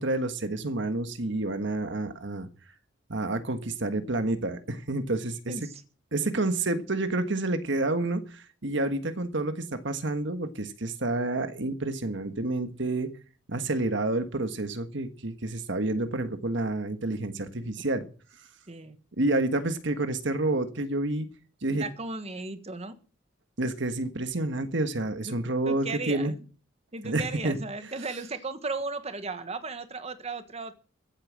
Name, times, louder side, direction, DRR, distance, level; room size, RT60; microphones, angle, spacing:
voice 1, 0.0-2.5 3.1-5.5 6.1-13.1 13.5-18.1 19.2-21.3 21.6-21.9 23.6-26.3 27.0-27.9, right 2 dB, 65° right, 9 dB, 1.5 m, -29 dB
voice 2, 18.7-19.0 21.7-23.0 25.2-25.4 25.7-26.4 26.9-30.7, right 3 dB, 30° right, 10 dB, 1.4 m, -35 dB
15.0 x 8.8 x 7.5 m, 0.38 s
head